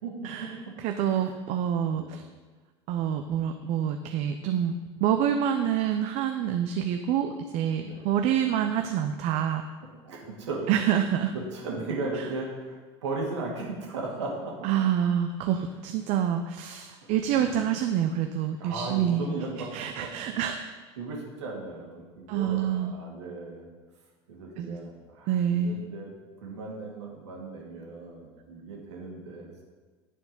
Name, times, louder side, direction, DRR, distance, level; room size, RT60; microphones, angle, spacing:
voice 1, 0.0-0.7 1.0-1.3 1.9-2.2 7.8-8.0 10.0-10.8 11.3-14.7 17.3-17.5 18.6-20.1 21.0-23.7 24.3-26.1 26.4-29.6, right 3 dB, 80° right, -2 dB, 2.2 m, -36 dB
voice 2, 0.8-2.2 2.9-4.7 5.0-9.6 10.7-11.3 14.6-19.2 19.7-20.6 22.3-22.9 24.6-24.8 25.3-25.7, right 9 dB, 55° right, 6 dB, 0.6 m, -27 dB
10.0 x 4.6 x 5.4 m, 1.3 s
hypercardioid pair, 80°, 15 cm